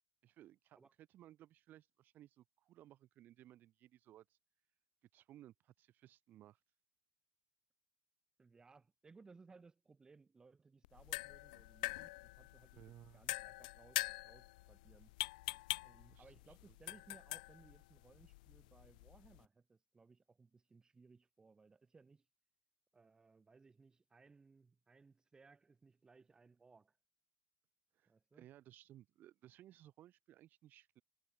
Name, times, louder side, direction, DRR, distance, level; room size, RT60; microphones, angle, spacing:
voice 1, 0.2-4.4 5.1-6.6 12.7-13.2 16.1-16.3 16.7-16.8 27.9-31.0, right 13 dB, 45° right, 6.9 m, -61 dB
voice 2, 8.4-15.1 15.8-22.3 22.9-27.0 28.1-28.5, right 4 dB, 15° right, 3.9 m, -64 dB
sound 1, 10.8-19.4, left 21 dB, 75° left, 0.6 m, -45 dB
supercardioid pair, 105°, 4 cm